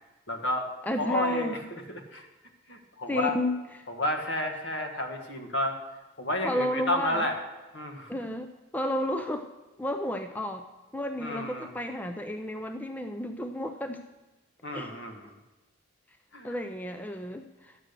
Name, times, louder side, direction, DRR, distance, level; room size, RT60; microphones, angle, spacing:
voice 1, 0.3-0.7 1.0-1.6 1.9-2.3 2.7-3.4 3.9-5.8 6.2-7.4 7.7-8.1 11.2-11.7 14.6-15.3 16.3-16.5, left 1 dB, 65° left, 5 dB, 1.4 m, -31 dB
voice 2, 0.8-1.6 3.1-3.6 6.4-7.3 8.1-9.5 9.8-10.7 10.9-14.0 14.7-14.9 16.4-17.8, equal, 10° left, 7 dB, 0.4 m, -32 dB
11.5 x 7.5 x 6.6 m, 1.1 s
head